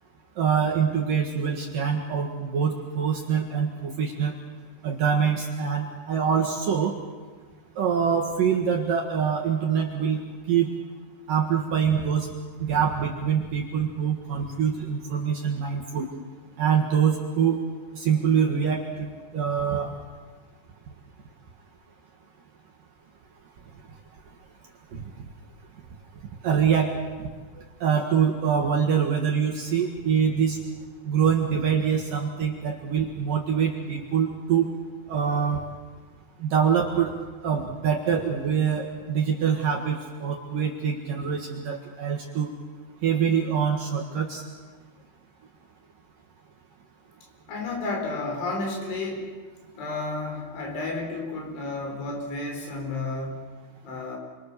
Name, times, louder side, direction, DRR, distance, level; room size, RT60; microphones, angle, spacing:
voice 1, 0.4-4.3 4.8-7.0 7.8-10.2 10.5-10.7 11.3-12.3 12.6-16.1 16.6-17.6 17.9-19.1 19.3-19.9 24.9-25.0 26.4-26.9 27.8-30.6 31.1-34.7 35.1-35.6 36.4-37.1 37.4-42.5 43.0-44.4, right 7 dB, 55° right, 0 dB, 2.7 m, -24 dB
voice 2, 47.5-49.3 49.8-53.5 53.8-54.2, left 3 dB, 70° left, 2 dB, 6.6 m, -32 dB
29.0 x 23.5 x 6.8 m, 1.4 s
omnidirectional pair, 5.7 m